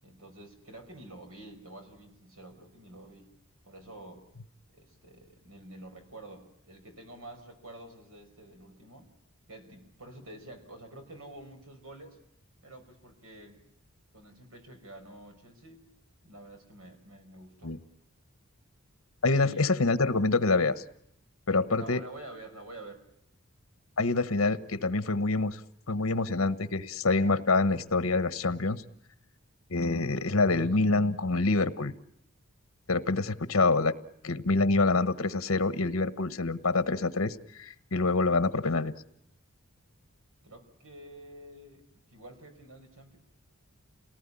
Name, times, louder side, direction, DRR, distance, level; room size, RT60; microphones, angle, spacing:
voice 1, 0.0-3.3 3.6-4.3 4.7-9.1 9.5-12.2 12.6-13.6 14.1-15.8 16.2-17.8 19.3-19.7 20.0-20.2 21.8-23.0 40.4-41.8 42.1-43.2, right 1 dB, 85° right, 5 dB, 5.6 m, -48 dB
voice 2, 19.2-20.8 21.5-22.0 24.0-25.6 25.9-28.8 29.7-31.9 32.9-33.9 34.2-38.9, left 3 dB, 75° left, 13 dB, 1.2 m, -26 dB
28.0 x 19.0 x 10.0 m, 0.76 s
head